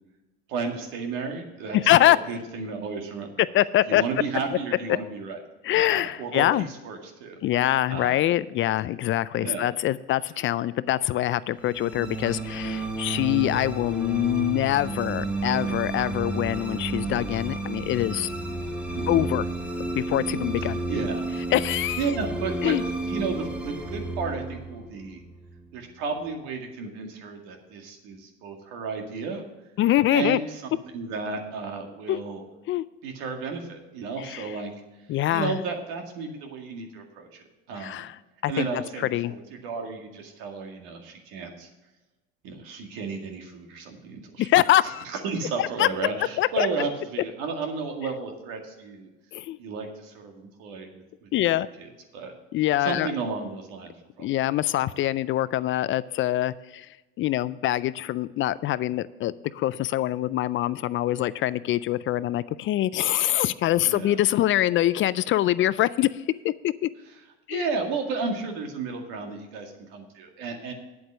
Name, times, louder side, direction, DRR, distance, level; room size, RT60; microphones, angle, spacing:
voice 1, 0.5-1.8 2.0-3.3 3.9-5.4 5.7-7.3 7.9-8.2 9.4-9.7 18.9-19.2 20.6-21.2 22.0-22.8 23.0-25.2 25.7-29.4 30.1-30.6 30.9-32.4 33.0-34.7 35.3-38.0 38.5-41.7 42.4-44.5 44.8-49.1 49.6-52.3 52.8-53.9 54.2-54.3 63.8-64.2 67.5-70.7, right 4 dB, 75° right, 3 dB, 2.1 m, -33 dB
voice 2, 1.7-2.2 3.5-4.0 4.9-5.0 5.6-6.7 7.4-18.3 19.1-19.5 20.0-20.8 21.5-22.1 22.6-22.8 29.8-30.4 32.1-32.2 32.7-32.8 34.2-34.6 35.1-35.6 37.8-38.2 38.4-39.3 44.4-45.0 45.6-45.9 46.4-46.7 49.3-49.6 51.3-51.7 52.5-53.1 54.2-56.9 57.2-66.1 66.4-66.9 67.5-67.7, left 14 dB, 40° left, 17 dB, 0.4 m, -24 dB
sound 1, 11.6-26.0, right 2 dB, 5° right, 1.4 m, -32 dB
8.7 x 7.9 x 6.2 m, 1.1 s
supercardioid pair, 95°, 30 cm